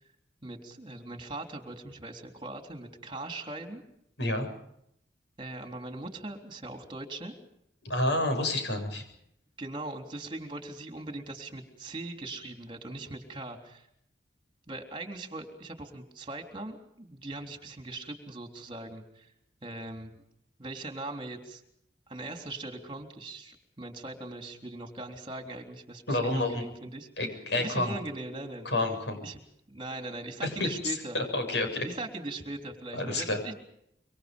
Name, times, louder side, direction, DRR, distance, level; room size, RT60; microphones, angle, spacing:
voice 1, 0.4-3.8 5.4-7.3 9.6-13.9 14.7-19.3 19.6-20.1 20.6-21.6 22.1-28.7 29.2-29.4 29.7-31.2 31.8-33.5, right 2 dB, 25° right, 4 dB, 3.6 m, -40 dB
voice 2, 7.8-9.0 26.1-26.6 27.2-27.9 28.7-29.2 30.6-31.9 32.9-33.4, left 2 dB, 75° left, 6 dB, 7.1 m, -29 dB
26.5 x 25.0 x 5.4 m, 0.76 s
head